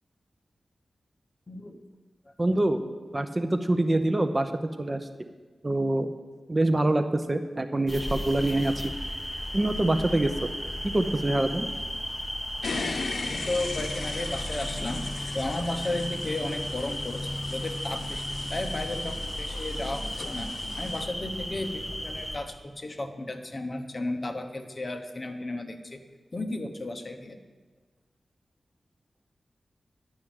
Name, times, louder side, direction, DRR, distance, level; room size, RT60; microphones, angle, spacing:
voice 1, 1.5-1.8 2.2-2.3 12.7-18.2 18.5-20.5 20.8-26.0 26.3-27.4, left 2 dB, 35° left, 7 dB, 1.0 m, -34 dB
voice 2, 2.4-2.8 3.1-4.5 4.8-5.0 5.6-6.1 6.5-8.9 9.5-10.5 10.8-11.7, right 1 dB, 25° right, 8 dB, 0.7 m, -25 dB
sound 1, 7.9-22.4, equal, 5° left, 1.3 m, -35 dB
sound 2, 12.6-21.0, left 3 dB, 75° left, 0.8 m, -37 dB
11.0 x 6.2 x 8.9 m, 1.3 s
wide cardioid pair, 105°, 0 cm